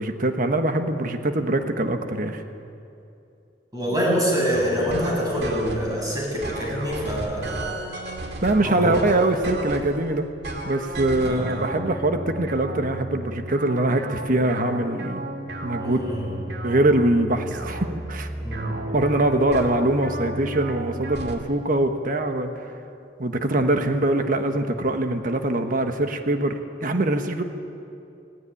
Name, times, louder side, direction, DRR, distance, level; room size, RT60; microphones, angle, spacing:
voice 1, 0.0-2.4 8.4-10.2 10.6-15.2 15.6-16.2 16.6-18.3 18.9-22.5 23.2-27.4, right 1 dB, 50° right, 6 dB, 1.3 m, -23 dB
voice 2, 3.7-7.7 8.5-9.0 11.2-11.6 15.8-16.3 18.4-18.9, equal, 20° right, -3 dB, 7.4 m, -26 dB
sound 1, 4.5-6.0 6.4-10.0 10.4-21.4, right 1 dB, 70° right, 2.1 m, -34 dB
17.5 x 17.0 x 9.9 m, 2.7 s
head